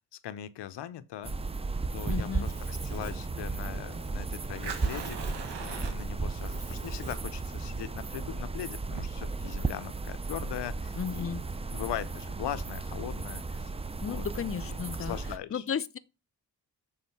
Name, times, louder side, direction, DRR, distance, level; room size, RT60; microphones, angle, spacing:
voice 1, 0.1-1.3 1.9-11.4 11.7-13.7 14.1-14.2 14.6-15.6, left 11 dB, 85° left, 0.7 m, -40 dB
sound 1, 1.2-15.4, right 3 dB, 15° right, 0.4 m, -35 dB
Domestic sounds home sounds, 1.7-7.9, right 2 dB, 70° right, 3.5 m, -50 dB
voice 2, 2.1-2.5 10.9-11.4 14.0-15.2 15.5-16.0, left 7 dB, 35° left, 0.5 m, -34 dB
Fire, 3.0-12.6, right 6 dB, 85° right, 1.4 m, -45 dB
7.4 x 3.7 x 5.7 m
cardioid pair, 85°, 40 cm